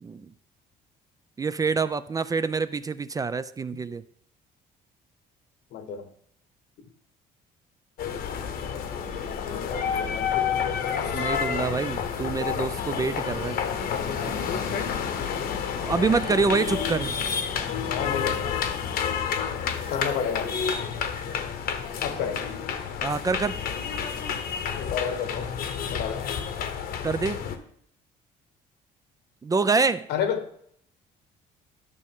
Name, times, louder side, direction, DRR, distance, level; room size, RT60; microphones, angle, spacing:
voice 1, 1.4-4.0 11.1-13.6 15.8-17.1 23.0-23.6 27.0-27.4 29.4-30.1, right 4 dB, 20° right, 0.3 m, -26 dB
voice 2, 5.7-6.1 9.5-11.3 17.9-18.5 19.9-20.6 22.0-22.5 24.8-25.5 25.9-26.3 30.1-30.5, left 7 dB, 80° left, 1.2 m, -31 dB
sound 1, 8.0-27.6, left 7 dB, 65° left, 1.0 m, -29 dB
12.0 x 6.2 x 3.6 m
cardioid pair, 110°, 17 cm